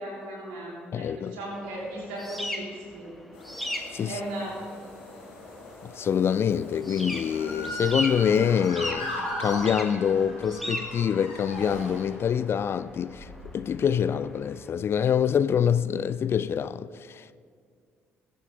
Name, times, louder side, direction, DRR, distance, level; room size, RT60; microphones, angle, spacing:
voice 1, 0.0-2.7 2.9-3.1 4.0-4.6, right 1 dB, 70° right, 3.8 m, -36 dB
voice 2, 0.9-1.4 3.9-4.2 5.8-13.3 13.5-17.4, left 8 dB, 40° left, 0.4 m, -25 dB
sound 1, 1.5-14.7, left 1 dB, ahead, 1.7 m, -39 dB
sound 2, 3.3-8.6, left 2 dB, 70° left, 2.5 m, -47 dB
Motor vehicle (road) / Siren, 7.2-12.5 13.1-13.6, left 1 dB, 90° left, 3.1 m, -36 dB
21.0 x 7.9 x 3.8 m
figure-of-eight pair, 45°, 6 cm